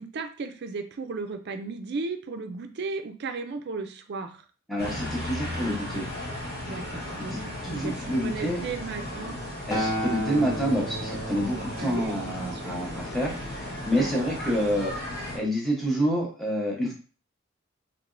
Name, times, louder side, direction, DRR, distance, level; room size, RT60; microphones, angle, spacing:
voice 1, 0.0-4.4 6.7-7.4 7.7-9.4 11.8-12.8 14.0-14.1, right 4 dB, 55° right, 7 dB, 0.4 m, -35 dB
voice 2, 4.7-6.1 7.3-8.6 9.7-14.9 15.3-16.9, equal, ahead, -3 dB, 0.8 m, -28 dB
sound 1, 4.8-15.4, left 1 dB, 45° left, 1.1 m, -36 dB
Acoustic guitar, 9.7-14.0 14.8-14.9, right 1 dB, 15° left, 0.5 m, -34 dB
3.3 x 2.9 x 2.5 m, 0.38 s
head